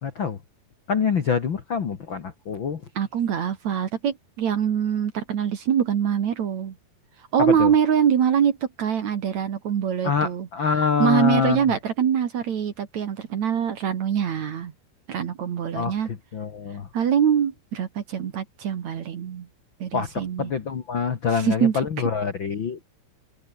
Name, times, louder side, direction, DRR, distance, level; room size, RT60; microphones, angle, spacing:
voice 1, 0.0-0.4 0.9-2.8 7.4-7.7 10.0-11.6 15.7-16.9 19.9-22.8, left 6 dB, 70° left, 1.1 m, -25 dB
voice 2, 3.0-6.7 7.3-10.5 11.0-14.7 15.1-16.1 16.9-19.5 19.8-20.5 21.3-21.8, right 8 dB, 55° right, 2.4 m, -24 dB
open air
omnidirectional pair, 5.1 m